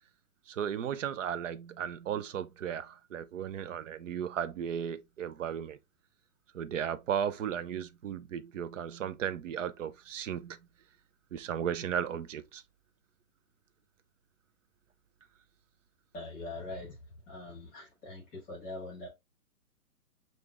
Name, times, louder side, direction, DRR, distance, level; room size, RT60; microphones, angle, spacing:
voice 1, 0.5-5.8 6.5-10.6 11.3-12.6, right 9 dB, 55° right, 0.6 m, -35 dB
voice 2, 16.1-17.0 17.3-19.1, left 2 dB, 15° left, 1.3 m, -42 dB
6.6 x 2.6 x 2.4 m
hypercardioid pair, 140°, 45 cm